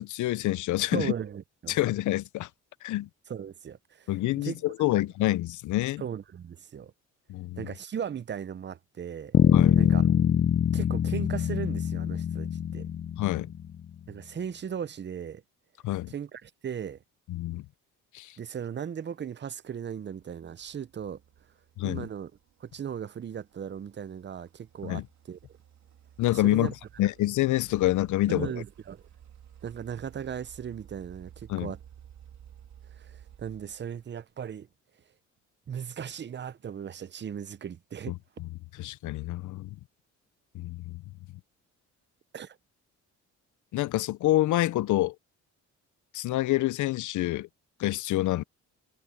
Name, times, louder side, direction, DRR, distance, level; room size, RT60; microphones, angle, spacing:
voice 1, 0.0-1.1 1.7-2.5 2.8-3.1 4.1-6.0 7.3-7.6 9.5-9.8 13.2-13.5 15.8-16.1 17.3-17.6 18.1-18.3 21.8-22.1 24.8-25.0 26.2-26.7 27.0-28.5 31.5-31.7 38.8-39.7 40.5-41.0 43.7-45.1 46.1-47.5 47.8-48.4, left 16 dB, 75° left, 0.6 m, -27 dB
voice 2, 0.9-1.8 3.3-4.1 4.4-4.6 4.9-5.0 6.0-6.9 7.6-9.3 9.8-10.2 10.7-12.9 14.1-15.4 16.1-17.0 18.4-21.2 21.8-22.3 22.6-25.4 26.3-26.7 28.3-29.1 29.6-31.8 32.9-34.7 35.7-38.2 42.3-42.6, right 8 dB, 35° right, 0.7 m, -37 dB
sound 1, 9.3-13.7, left 9 dB, 35° left, 0.5 m, -24 dB
sound 2, 20.2-34.4, right 9 dB, 65° right, 3.0 m, -54 dB
cardioid pair, 90°, 30 cm